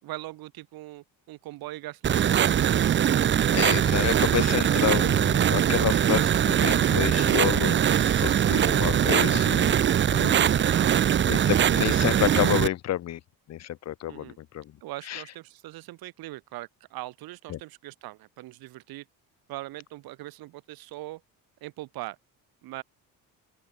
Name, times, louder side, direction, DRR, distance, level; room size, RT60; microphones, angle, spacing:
voice 1, 0.0-2.7 10.6-10.9 11.3-11.4 14.1-14.4 14.8-19.1 19.5-21.2 21.6-22.2 22.6-22.8, right 17 dB, 80° right, 1.8 m, -41 dB
sound 1, 2.0-12.7, right 9 dB, 30° right, 0.7 m, -22 dB
voice 2, 3.5-10.5 11.3-13.2 13.5-14.7 15.1-15.2 17.5-17.6, left 12 dB, 45° left, 0.8 m, -29 dB
open air
cardioid pair, 150°, 36 cm